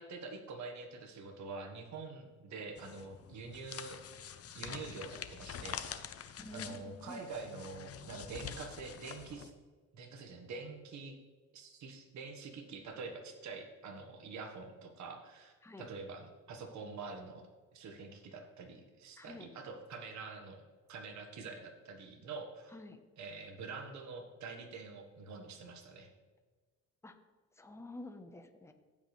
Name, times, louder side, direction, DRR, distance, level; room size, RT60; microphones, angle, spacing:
voice 1, 0.0-4.0 4.5-5.8 6.5-9.5 9.9-11.2 11.5-17.5 17.7-20.6 20.9-22.8 23.2-26.1, right 4 dB, 70° right, 3 dB, 1.4 m, -46 dB
sound 1, 2.8-9.5, left 8 dB, 50° left, 0.8 m, -46 dB
voice 2, 6.4-7.3 15.6-15.9 19.2-19.5 22.7-23.0 27.0-27.1 27.6-28.7, left 2 dB, 10° left, 6 dB, 0.9 m, -49 dB
15.5 x 5.5 x 3.3 m, 1.4 s
cardioid pair, 90°, 30 cm